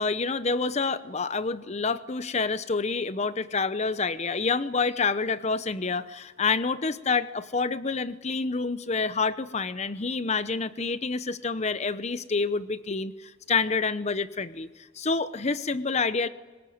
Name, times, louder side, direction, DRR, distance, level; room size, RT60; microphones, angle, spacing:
voice 1, 0.0-14.7 15.0-16.3, left 4 dB, 35° left, 14 dB, 0.8 m, -28 dB
23.0 x 19.5 x 9.4 m, 1.3 s
head